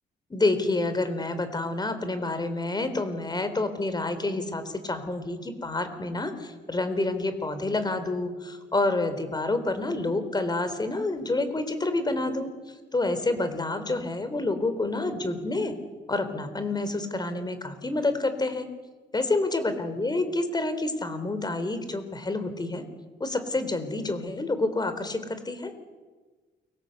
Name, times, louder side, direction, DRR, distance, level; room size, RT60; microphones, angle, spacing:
voice 1, 0.3-12.5 12.9-15.7 16.1-18.7 19.1-22.8 23.2-25.7, left 2 dB, 20° left, 10 dB, 4.0 m, -28 dB
29.5 x 24.0 x 8.0 m, 1.3 s
cardioid pair, 105°, 18 cm